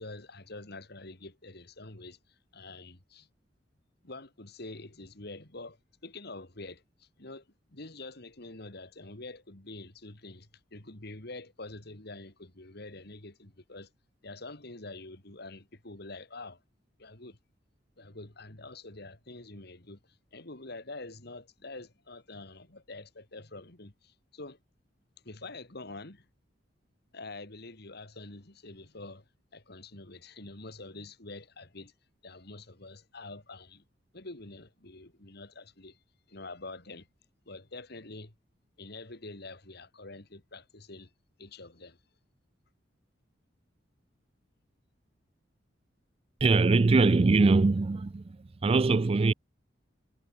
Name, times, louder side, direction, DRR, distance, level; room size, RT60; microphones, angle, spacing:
voice 1, 0.0-2.2 2.5-3.3 4.0-5.8 6.0-13.9 14.2-16.6 17.0-17.4 18.0-20.0 20.3-24.6 25.2-26.3 27.1-29.2 29.5-31.9 32.2-33.8 34.1-36.0 36.3-37.1 37.5-38.3 38.8-41.1 41.4-42.0, left 2 dB, 60° left, 3.1 m, -46 dB
voice 2, 46.4-49.3, right 3 dB, 30° right, 0.4 m, -23 dB
head